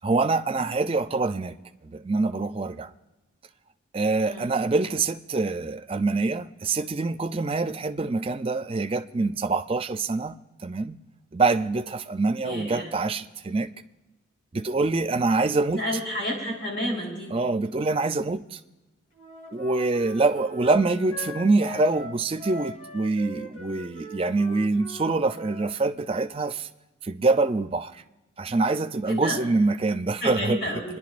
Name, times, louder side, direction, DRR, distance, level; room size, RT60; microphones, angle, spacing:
voice 1, 0.0-1.6 1.8-2.9 3.9-10.4 10.6-11.0 11.3-13.7 14.5-15.8 17.3-18.6 19.5-26.7 27.0-28.0 28.4-30.6, right 3 dB, 25° right, 0.4 m, -25 dB
voice 2, 12.4-12.9 15.7-17.3 29.1-29.4 30.2-31.0, equal, 60° left, 4.6 m, -30 dB
Wind instrument woodwind instrument, 19.1-25.7, left 1 dB, 30° left, 2.1 m, -41 dB
28.5 x 11.0 x 2.5 m
head